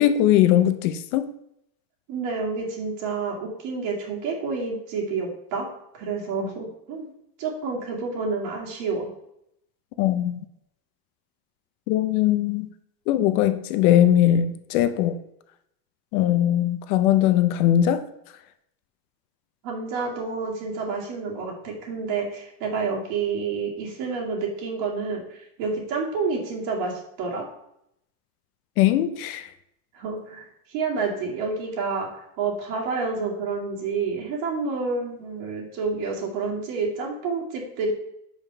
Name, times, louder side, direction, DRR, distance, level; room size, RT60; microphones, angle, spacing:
voice 1, 0.0-1.3 10.0-10.4 11.9-12.7 13.1-15.2 16.1-18.0 28.8-29.5, left 12 dB, 60° left, 11 dB, 0.7 m, -20 dB
voice 2, 2.1-5.7 5.9-7.1 7.4-9.1 19.6-26.9 27.2-27.5 29.9-37.9, right 4 dB, 60° right, -1 dB, 2.4 m, -29 dB
5.2 x 4.9 x 5.5 m, 0.77 s
supercardioid pair, 135°, 48 cm